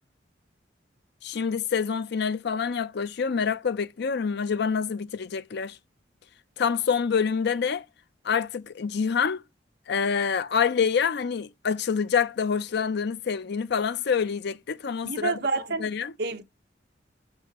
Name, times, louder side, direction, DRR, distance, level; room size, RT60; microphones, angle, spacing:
voice 1, 1.2-5.8 6.6-7.8 8.2-9.4 9.9-15.4 15.8-16.1, left 6 dB, 65° left, 0.5 m, -26 dB
voice 2, 15.0-15.9 16.2-16.4, right 4 dB, 60° right, 1.0 m, -28 dB
6.9 x 5.5 x 2.8 m
head